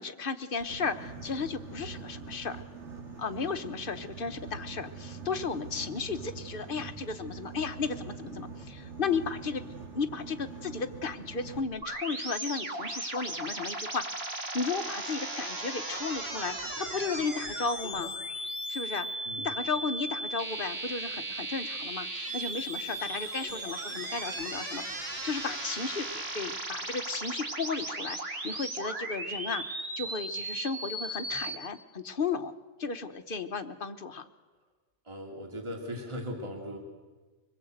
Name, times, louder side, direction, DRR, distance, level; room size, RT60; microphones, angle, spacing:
voice 1, 0.0-2.6 3.2-9.7 9.9-18.1 18.7-19.1 19.4-32.5 32.8-34.3, left 5 dB, 50° left, 10 dB, 1.2 m, -34 dB
Boat Water vehicle, 0.6-11.6, right 4 dB, 80° right, 2.5 m, -44 dB
sound 1, 11.8-31.5, right 2 dB, 60° right, 2.6 m, -36 dB
voice 2, 35.0-36.8, equal, 25° right, 1 dB, 3.0 m, -38 dB
25.0 x 21.0 x 7.9 m, 1.3 s
omnidirectional pair, 1.2 m